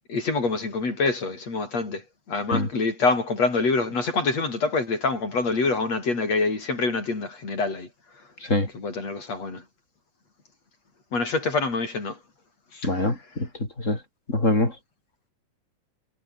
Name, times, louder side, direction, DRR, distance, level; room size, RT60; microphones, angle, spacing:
voice 1, 0.1-2.0 2.3-7.9 8.7-9.6 11.1-12.2 12.7-13.0, left 3 dB, 50° left, 7.7 m, -26 dB
voice 2, 12.8-13.5 13.8-14.0 14.3-14.8, left 2 dB, 20° left, 5.7 m, -24 dB
omnidirectional pair, 3.9 m